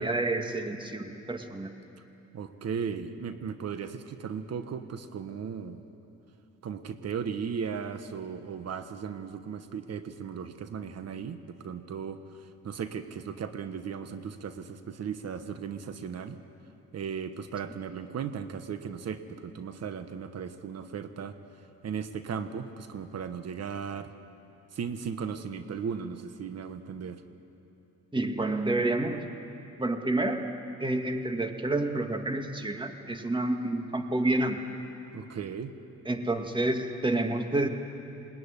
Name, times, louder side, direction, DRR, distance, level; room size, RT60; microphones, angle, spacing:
voice 1, 0.0-1.7 28.1-29.3 29.8-30.5 30.8-34.6 36.1-37.7, right 2 dB, 15° right, 5 dB, 2.0 m, -29 dB
voice 2, 2.3-5.8 6.6-12.2 12.6-16.4 16.9-21.4 21.8-24.1 24.7-27.2 35.1-35.7, right 6 dB, 55° right, 9 dB, 1.3 m, -36 dB
21.0 x 20.0 x 9.8 m, 3.0 s
cardioid pair, 90°, 30 cm